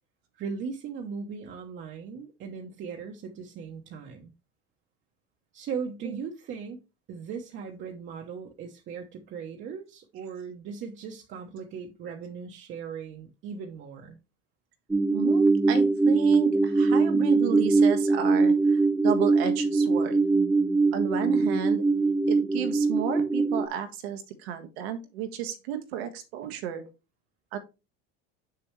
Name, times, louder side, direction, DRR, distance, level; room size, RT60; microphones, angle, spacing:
voice 1, 0.3-4.3 5.5-6.8 7.1-14.2, right 6 dB, 40° right, 1.0 m, -38 dB
sound 1, 14.9-23.7, right 3 dB, 5° right, 0.4 m, -22 dB
voice 2, 15.1-20.2 20.9-21.8 22.3-26.8 27.5-27.6, right 9 dB, 90° right, 1.6 m, -32 dB
6.8 x 6.6 x 3.2 m
supercardioid pair, 140°, 30 cm